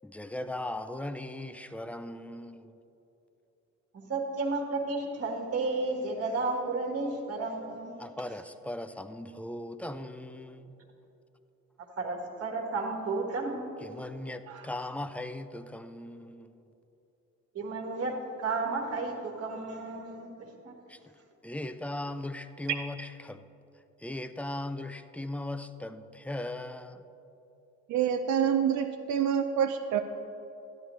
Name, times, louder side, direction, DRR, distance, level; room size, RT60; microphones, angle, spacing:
voice 1, 0.0-2.8 8.0-10.8 13.8-16.6 20.9-23.5 24.0-27.0, left 1 dB, 5° left, 10 dB, 0.4 m, -38 dB
voice 2, 3.9-7.9 12.0-13.8 14.5-14.7 17.5-20.8, right 3 dB, 50° right, 1 dB, 1.5 m, -33 dB
voice 3, 27.9-30.0, right 8 dB, 70° right, 6 dB, 0.5 m, -27 dB
12.5 x 10.0 x 3.1 m, 2.9 s
cardioid pair, 90°, 30 cm